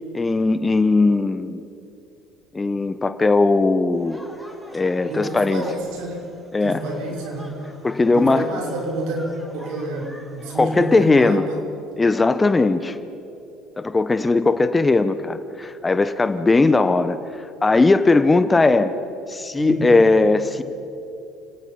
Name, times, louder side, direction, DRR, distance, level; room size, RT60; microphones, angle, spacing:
voice 1, 0.1-1.6 2.5-4.2 4.7-5.6 6.5-6.8 7.8-8.5 10.6-11.5 12.0-13.0 13.8-18.9 19.3-20.6, left 3 dB, 20° left, 12 dB, 1.1 m, -18 dB
sound 1, 3.9-11.1, equal, ahead, 3.8 m, -44 dB
voice 2, 5.1-6.3 6.6-7.5 8.0-11.6 19.6-19.9, right 2 dB, 70° right, 0 dB, 5.4 m, -29 dB
29.5 x 18.0 x 5.5 m, 2.8 s
hypercardioid pair, 65°, 0 cm